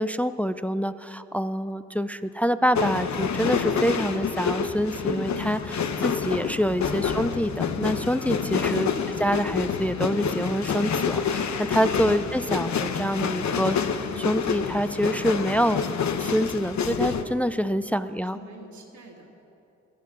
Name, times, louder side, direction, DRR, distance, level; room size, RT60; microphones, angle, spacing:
voice 1, 0.0-8.9 9.2-13.8 14.2-15.8 16.2-18.4, equal, 5° left, 12 dB, 0.5 m, -26 dB
sound 1, 2.7-17.2, left 6 dB, 70° left, 1.0 m, -28 dB
voice 2, 6.9-7.3 8.7-9.0 17.7-19.3, right 2 dB, 75° right, 0 dB, 2.5 m, -46 dB
18.0 x 12.0 x 6.1 m, 2.8 s
supercardioid pair, 50°, 30 cm